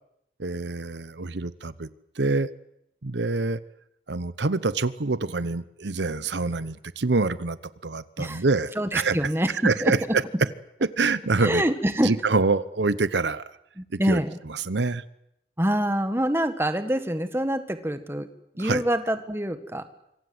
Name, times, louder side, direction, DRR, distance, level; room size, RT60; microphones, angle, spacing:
voice 1, 0.4-1.9 2.2-2.5 3.0-3.6 4.1-7.6 7.8-9.3 9.6-10.2 10.8-11.6 12.0-13.4 13.9-15.0 18.6-18.8, right 3 dB, 80° right, 16 dB, 0.9 m, -26 dB
voice 2, 8.8-9.5 9.8-10.2 11.4-12.1 13.8-14.4 15.6-18.3 18.6-19.8, right 1 dB, 15° right, 9 dB, 1.7 m, -25 dB
26.0 x 24.0 x 8.0 m, 0.80 s
head